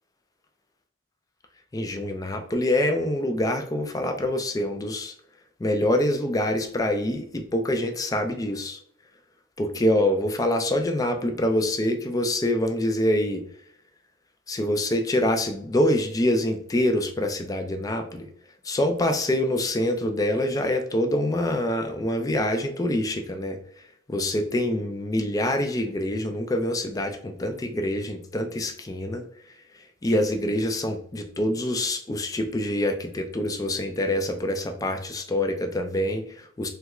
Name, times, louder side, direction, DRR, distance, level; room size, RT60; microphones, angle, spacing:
voice 1, 1.7-5.1 5.6-8.8 9.6-13.4 14.5-18.3 18.6-23.6 24.1-29.2 30.0-36.7, left 1 dB, 20° left, 6 dB, 0.3 m, -25 dB
3.3 x 2.3 x 2.9 m, 0.65 s
head